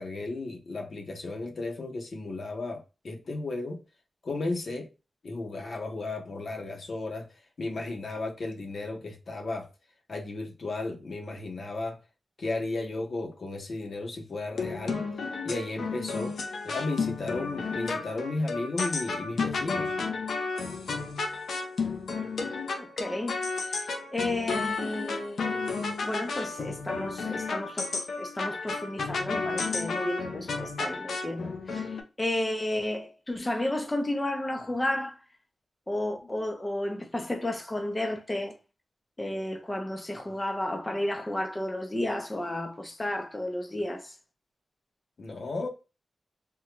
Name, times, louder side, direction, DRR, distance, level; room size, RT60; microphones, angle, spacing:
voice 1, 0.0-3.8 4.2-4.9 5.2-9.7 10.1-12.0 12.4-15.0 15.4-16.4 16.6-20.0 36.2-36.3 45.2-45.7, left 2 dB, 60° left, 0.8 m, -34 dB
sound 1, 14.5-32.0, left 4 dB, 90° left, 0.6 m, -32 dB
voice 2, 22.8-23.8 24.1-25.6 26.0-35.2 35.9-38.6 39.2-44.2, left 1 dB, 20° left, 0.5 m, -32 dB
3.6 x 2.2 x 2.9 m
wide cardioid pair, 120°, 0 cm